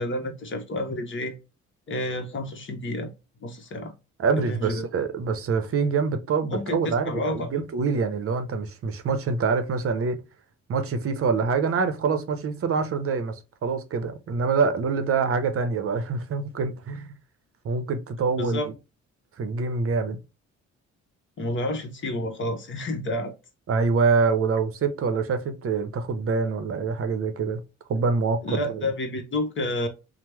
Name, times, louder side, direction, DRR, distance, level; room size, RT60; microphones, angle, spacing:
voice 1, 0.0-1.4 1.9-3.1 3.4-3.9 4.3-4.8 6.5-7.5 18.4-18.7 21.4-23.3 28.4-29.9, left 1 dB, 40° left, 0.9 m, -29 dB
voice 2, 4.2-10.2 10.7-17.1 17.6-18.7 19.4-20.2 23.7-27.6 27.9-28.9, right 5 dB, 50° right, 0.7 m, -25 dB
3.0 x 2.1 x 3.2 m
cardioid pair, 90°, 30 cm